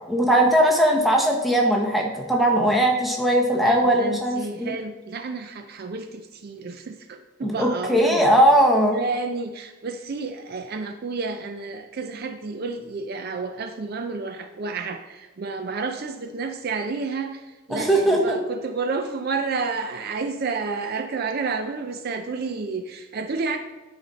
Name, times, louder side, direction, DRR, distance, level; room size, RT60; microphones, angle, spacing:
voice 1, 0.1-4.7 7.4-9.0 17.7-18.4, right 1 dB, ahead, 0 dB, 0.9 m, -19 dB
voice 2, 3.5-8.2 8.9-23.6, right 4 dB, 45° right, 6 dB, 0.4 m, -30 dB
9.6 x 4.1 x 4.1 m, 1.2 s
head